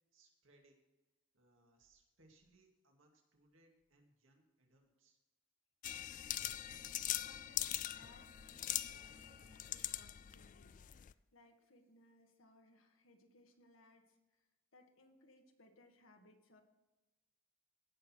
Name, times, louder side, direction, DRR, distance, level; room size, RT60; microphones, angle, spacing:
voice 1, 0.1-0.8 1.3-5.2, right 2 dB, 75° right, 1 dB, 2.3 m, -70 dB
sound 1, 5.8-11.1, left 13 dB, 40° left, 0.3 m, -42 dB
Bowed string instrument, 6.3-11.4, left 1 dB, 35° right, 2.2 m, -70 dB
voice 2, 7.2-14.4 14.7-16.6, left 1 dB, 85° left, 4 dB, 1.7 m, -66 dB
17.0 x 6.3 x 4.5 m, 1.1 s
head